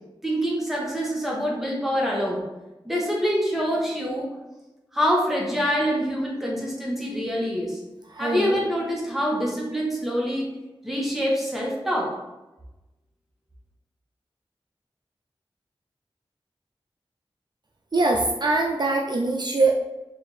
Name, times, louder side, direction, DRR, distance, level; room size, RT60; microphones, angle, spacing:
voice 1, 0.2-2.5 2.8-4.3 4.9-7.8 8.2-10.5 10.8-12.2, equal, 5° right, -3 dB, 1.4 m, -25 dB
voice 2, 8.1-8.6 17.9-19.8, right 3 dB, 45° right, 0 dB, 0.4 m, -23 dB
4.9 x 2.7 x 3.2 m, 1.0 s
cardioid pair, 45°, 10 cm